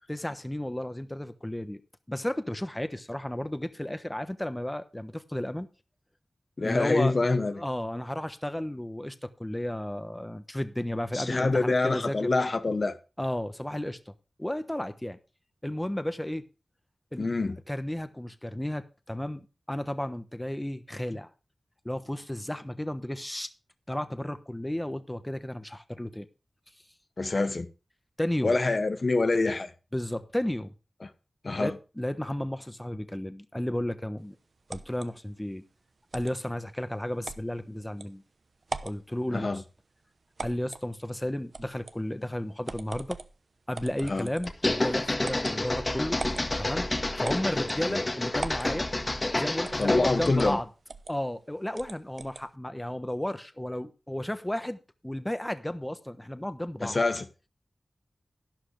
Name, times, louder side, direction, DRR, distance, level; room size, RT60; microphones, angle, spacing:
voice 1, 0.1-1.8 2.1-5.7 6.6-7.2 7.5-12.3 13.2-14.1 14.4-15.2 15.6-16.4 17.1-17.3 17.7-21.3 21.8-23.5 23.9-26.3 28.2-28.5 29.9-30.7 31.6-34.4 34.7-35.6 36.1-38.2 38.8-39.6 40.4-43.2 43.7-46.2 46.6-46.9 47.2-48.9 49.4-50.6 51.1-54.8 55.0-57.0, left 1 dB, 15° left, 1.1 m, -33 dB
voice 2, 6.6-7.6 11.1-12.9 17.2-17.6 27.2-27.7 28.4-29.7 31.0-31.1 31.4-31.8 39.3-39.6 44.1-44.3 47.8-48.0 49.8-50.6 56.8-57.3, left 3 dB, 55° left, 1.1 m, -26 dB
sound 1, 34.7-35.1 36.1-36.4 37.2-37.5 38.0-38.1 38.6-39.0 40.4-40.9 41.5-42.0 42.7-43.3 43.7-44.6 45.2-45.5 46.2-46.5 47.2-47.8 48.4-48.7 49.7-49.9 50.2-50.5 50.9-51.1 51.8-52.4, right 3 dB, 70° right, 0.8 m, -39 dB
sound 2, 44.5-50.6, left 2 dB, 40° left, 1.7 m, -29 dB
12.0 x 11.0 x 3.3 m
cardioid pair, 50°, 0 cm